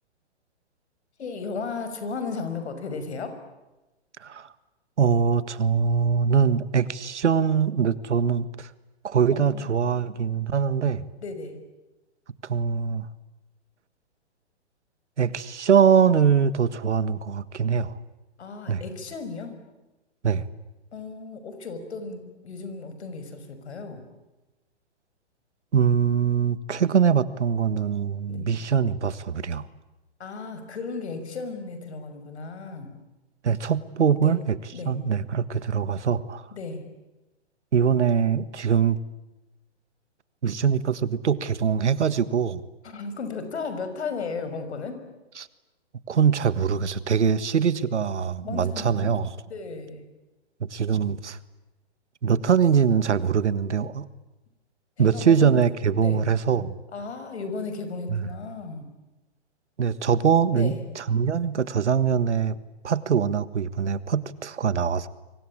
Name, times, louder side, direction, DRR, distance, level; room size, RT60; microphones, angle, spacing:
voice 1, 1.2-3.4 9.3-9.7 11.2-11.6 18.4-19.6 20.9-24.0 28.3-28.5 30.2-33.0 34.2-34.4 34.7-35.0 36.5-36.8 42.8-45.0 47.8-47.9 48.4-49.1 49.5-50.1 55.0-55.5 56.0-56.2 56.9-58.9 60.5-60.8, left 4 dB, 70° left, 9 dB, 6.0 m, -35 dB
voice 2, 4.2-4.5 5.0-8.7 9.0-11.0 12.4-13.1 15.2-18.0 18.7-18.8 20.2-20.4 25.7-29.7 33.4-34.6 34.8-36.5 37.7-39.0 40.4-42.6 45.4-45.5 46.1-49.4 50.6-51.4 52.2-54.1 55.0-56.7 58.1-58.2 59.8-62.6 62.8-65.1, right 7 dB, 85° right, 15 dB, 1.6 m, -23 dB
25.5 x 24.5 x 8.8 m, 1.1 s
hypercardioid pair, 140°, 34 cm